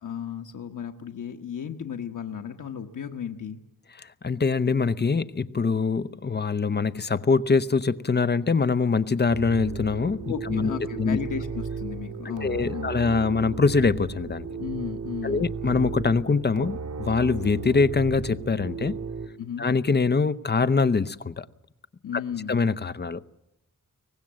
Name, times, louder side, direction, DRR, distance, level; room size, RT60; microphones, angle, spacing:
voice 1, 0.0-3.6 10.3-12.9 14.6-15.5 19.4-19.7 22.0-22.6, left 8 dB, 90° left, 1.3 m, -34 dB
voice 2, 4.0-11.2 12.2-14.5 15.2-19.0 19.6-21.5 22.1-22.2 22.5-23.3, left 4 dB, 35° left, 0.8 m, -24 dB
sound 1, 9.3-19.3, right 5 dB, 75° right, 2.1 m, -35 dB
24.0 x 19.0 x 7.6 m
wide cardioid pair, 100°, 30 cm